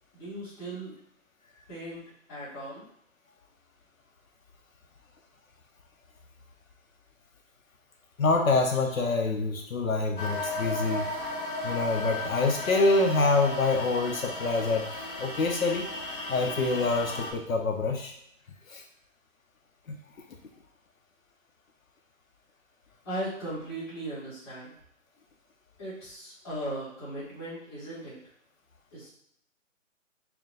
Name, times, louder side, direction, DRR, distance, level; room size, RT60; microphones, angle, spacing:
voice 1, 0.1-1.0 1.7-2.0 2.3-2.9 23.0-24.7 25.8-28.2 28.9-29.1, right 1 dB, 20° left, -10 dB, 1.7 m, -37 dB
voice 2, 8.2-11.1 11.6-15.9 16.3-18.1 18.7-18.8 19.9-20.0, left 3 dB, 80° left, 3 dB, 0.8 m, -26 dB
sound 1, 10.2-17.3, left 2 dB, 40° left, 0.7 m, -35 dB
4.7 x 2.2 x 3.7 m, 0.71 s
hypercardioid pair, 170°, 40 cm